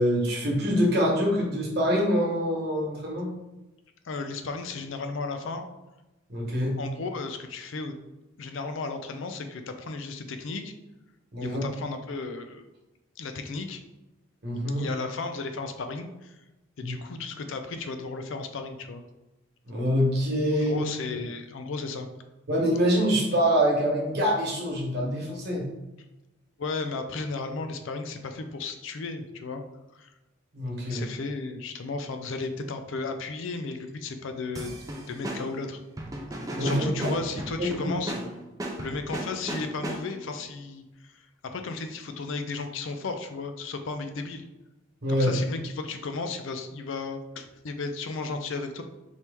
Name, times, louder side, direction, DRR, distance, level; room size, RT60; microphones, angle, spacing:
voice 1, 0.0-3.3 6.3-6.8 11.3-11.6 14.4-14.9 16.8-17.0 19.7-20.8 22.5-25.7 30.5-31.0 36.6-37.1 37.6-37.9 45.0-45.3, equal, 50° right, -3 dB, 1.2 m, -25 dB
voice 2, 4.0-5.6 6.8-8.0 8.4-10.7 11.4-12.6 13.2-13.8 14.8-16.4 16.8-19.0 20.6-22.1 26.6-29.6 29.9-30.1 30.9-34.7 35.1-35.8 36.6-38.1 38.8-41.3 41.5-44.5 45.1-48.8, left 3 dB, 65° left, 7 dB, 0.4 m, -34 dB
sound 1, 34.5-40.3, right 1 dB, 15° right, 0.4 m, -36 dB
4.4 x 2.9 x 3.4 m, 1.0 s
head